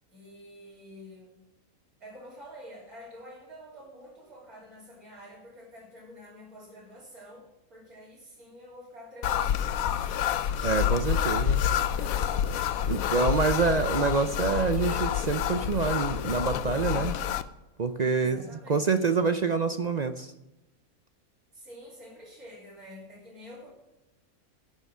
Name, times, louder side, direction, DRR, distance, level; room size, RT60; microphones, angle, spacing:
voice 1, 0.1-1.4 2.0-9.8 18.1-19.2 21.5-23.7, equal, 80° right, -8 dB, 3.8 m, -48 dB
sound 1, 9.2-17.4, left 9 dB, 75° left, 1.1 m, -28 dB
voice 2, 10.6-11.6 12.9-17.2 17.8-18.4 18.7-20.3, right 4 dB, 55° right, 9 dB, 0.4 m, -26 dB
12.0 x 6.7 x 7.4 m, 0.97 s
omnidirectional pair, 1.5 m